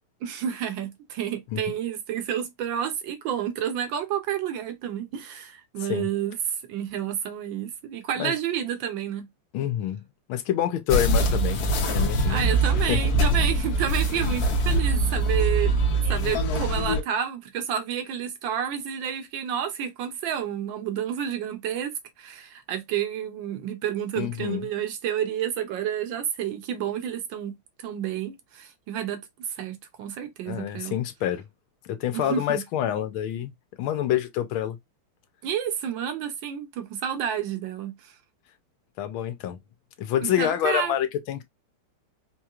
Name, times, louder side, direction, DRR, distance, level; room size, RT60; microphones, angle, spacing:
voice 1, 0.2-6.4 6.7-9.3 12.3-15.8 16.1-31.0 32.1-32.6 35.4-38.2 40.2-40.9, right 9 dB, 70° right, 1.3 m, -30 dB
voice 2, 9.5-10.0 10.3-12.5 12.9-13.0 24.2-24.7 30.5-31.4 31.9-33.5 33.8-34.8 39.0-39.6 40.0-41.4, left 11 dB, 80° left, 1.5 m, -27 dB
sound 1, 10.9-17.0, right 1 dB, 55° left, 1.2 m, -23 dB
4.8 x 2.9 x 2.4 m
omnidirectional pair, 2.3 m